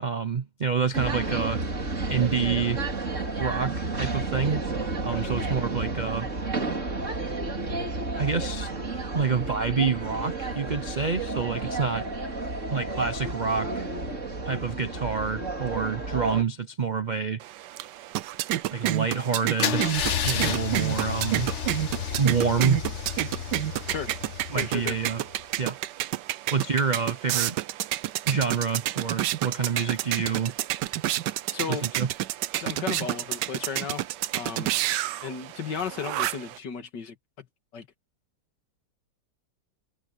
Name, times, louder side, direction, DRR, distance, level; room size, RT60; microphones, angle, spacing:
voice 1, 0.0-1.6 2.1-2.8 3.4-4.6 5.0-6.3 8.2-8.7 9.1-12.1 12.7-13.9 14.4-17.4 18.7-20.0 20.2-21.5 22.2-22.8 24.5-25.2 25.6-25.8 26.5-27.6 28.3-30.5 31.7-32.1, right 5 dB, 60° right, 0.4 m, -27 dB
sound 1, 0.9-16.4, right 3 dB, 40° right, 3.4 m, -31 dB
sound 2, 17.4-36.6, right 14 dB, 75° right, 1.3 m, -30 dB
Car / Engine starting / Idling, 19.6-25.4, left 8 dB, 45° left, 1.2 m, -31 dB
voice 2, 24.5-25.0 31.5-31.9 32.6-34.1 34.3-34.7 35.2-37.5 37.7-37.9, left 6 dB, 70° left, 2.5 m, -34 dB
omnidirectional pair, 1.9 m